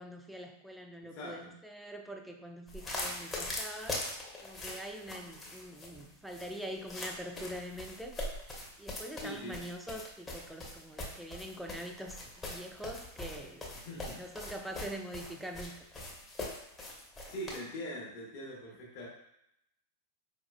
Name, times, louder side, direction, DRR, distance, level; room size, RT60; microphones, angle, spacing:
voice 1, 0.0-4.1 4.4-8.2 8.8-13.7 14.1-15.7, equal, ahead, 3 dB, 0.4 m, -44 dB
voice 2, 1.1-1.5 9.2-9.6 13.8-14.3 17.3-19.1, equal, 40° left, -4 dB, 1.0 m, -42 dB
sound 1, 2.7-17.6, left 1 dB, 20° left, 0.8 m, -42 dB
4.5 x 2.8 x 2.3 m, 0.80 s
figure-of-eight pair, 90°, 0 cm